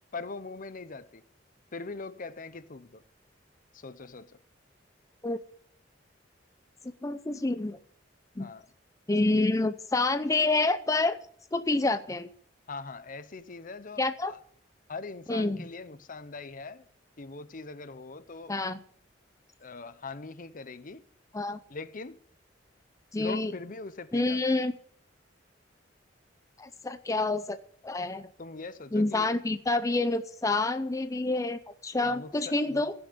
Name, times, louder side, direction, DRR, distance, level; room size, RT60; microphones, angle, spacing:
voice 1, 0.1-1.2 1.7-3.0 3.7-4.4 8.4-8.7 12.7-14.4 14.9-16.9 17.2-18.5 19.6-21.0 21.7-22.2 23.1-24.6 28.4-29.3 32.0-32.8, left 3 dB, 45° left, 0.8 m, -41 dB
voice 2, 7.0-7.8 8.4-8.5 9.1-11.2 11.5-12.3 14.0-14.3 15.3-15.6 18.5-18.8 21.3-21.6 23.1-23.5 24.1-24.7 26.6-27.6 27.8-28.3 28.9-32.9, left 2 dB, 20° left, 0.6 m, -28 dB
16.0 x 7.1 x 9.5 m
head